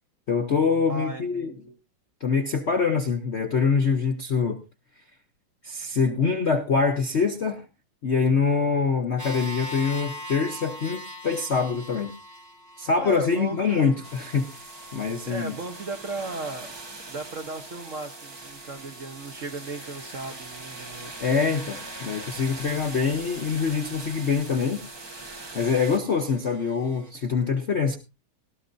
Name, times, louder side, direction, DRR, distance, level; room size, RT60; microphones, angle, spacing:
voice 1, 0.3-1.5 2.2-4.6 5.6-7.6 8.0-12.1 12.8-14.5 14.9-15.6 21.2-24.8 25.5-28.0, left 5 dB, 55° left, 0.7 m, -24 dB
voice 2, 0.9-1.8 13.0-14.1 15.2-16.7 17.1-21.1 22.6-22.8, right 3 dB, 55° right, 0.9 m, -36 dB
sound 1, 9.2-27.1, left 1 dB, 10° right, 1.0 m, -44 dB
sound 2, 14.0-26.0, right 2 dB, 30° right, 0.5 m, -41 dB
18.5 x 12.5 x 2.6 m
omnidirectional pair, 2.3 m